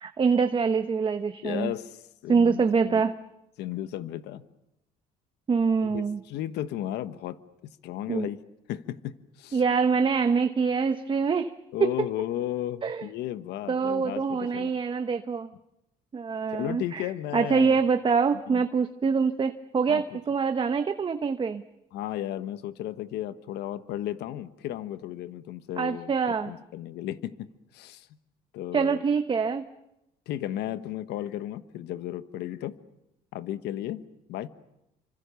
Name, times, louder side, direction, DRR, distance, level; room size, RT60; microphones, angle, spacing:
voice 1, 0.0-1.7 2.3-3.1 5.5-6.2 8.1-8.3 9.5-11.5 11.8-11.9 12.8-13.1 13.7-15.5 16.1-21.6 25.8-26.5 28.7-29.6, right 5 dB, 30° right, 8 dB, 1.1 m, -25 dB
voice 2, 1.4-3.0 3.6-4.4 5.9-7.4 7.8-8.4 8.7-9.6 11.7-14.7 16.5-17.8 18.5-18.6 19.9-20.2 21.9-26.1 26.5-27.5 27.7-28.1 28.5-29.0 30.3-32.8 33.3-34.0 34.3-34.5, left 12 dB, 80° left, 12 dB, 1.3 m, -34 dB
28.0 x 25.5 x 7.0 m, 0.88 s
cardioid pair, 110°, 17 cm